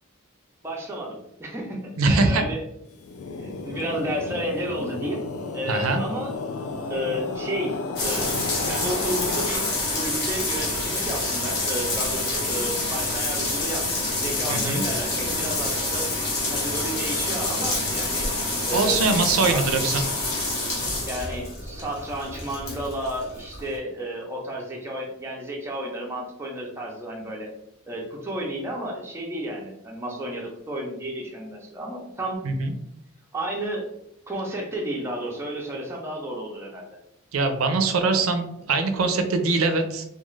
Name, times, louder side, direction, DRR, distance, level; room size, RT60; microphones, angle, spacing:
voice 1, 0.6-2.6 3.4-5.2 5.5-6.4 6.9-8.3 8.6-9.7 9.9-16.1 16.5-18.3 18.6-19.1 19.5-19.7 21.0-27.5 27.8-32.4 33.3-33.9 34.3-36.9, right 1 dB, 10° right, -2 dB, 0.4 m, -32 dB
voice 2, 2.0-2.4 5.7-6.0 14.5-14.8 18.7-20.0 32.4-32.7 37.3-40.0, right 3 dB, 80° right, 6 dB, 0.4 m, -22 dB
sound 1, 2.9-10.3, left 3 dB, 80° left, 0.4 m, -33 dB
sound 2, 8.0-23.8, left 2 dB, 55° left, 0.8 m, -27 dB
2.4 x 2.3 x 3.1 m, 0.74 s
head